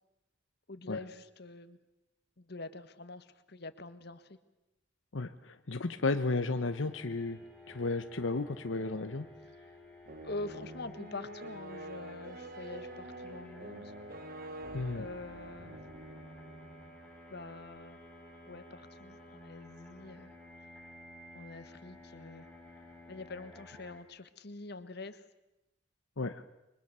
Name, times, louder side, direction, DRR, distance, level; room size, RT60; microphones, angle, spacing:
voice 1, 0.7-1.8 2.4-4.4 10.2-13.9 14.9-15.8 17.3-18.0 18.5-20.3 21.3-22.5 23.1-25.2, left 3 dB, 55° left, 11 dB, 1.5 m, -45 dB
voice 2, 5.1-7.4 7.7-9.3 14.7-15.0 26.2-26.4, left 3 dB, 80° left, 8 dB, 1.0 m, -33 dB
sound 1, 6.7-24.0, left 1 dB, 5° left, 4.5 m, -53 dB
sound 2, 10.1-17.0, right 1 dB, 50° right, 1.1 m, -46 dB
29.0 x 24.0 x 6.9 m, 0.94 s
head